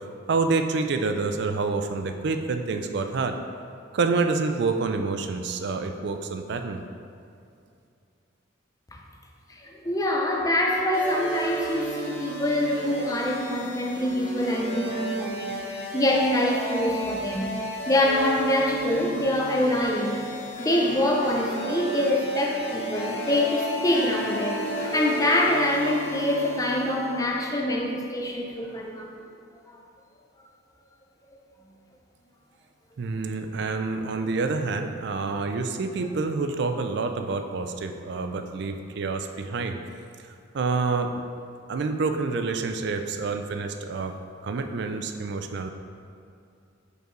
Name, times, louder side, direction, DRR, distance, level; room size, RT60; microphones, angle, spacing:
voice 1, 0.3-3.4 3.9-6.8 33.0-39.8 40.5-41.1 41.7-44.1 44.4-45.7, right 4 dB, 60° right, 6 dB, 0.4 m, -27 dB
voice 2, 9.5-17.5 17.9-20.2 20.6-29.1, left 1 dB, 15° left, -1 dB, 0.5 m, -25 dB
sound 1, 10.9-27.3, right 1 dB, 35° left, 1.1 m, -34 dB
Harp, 20.4-29.0, equal, 85° left, 1.2 m, -38 dB
5.3 x 4.7 x 3.8 m, 2.5 s
head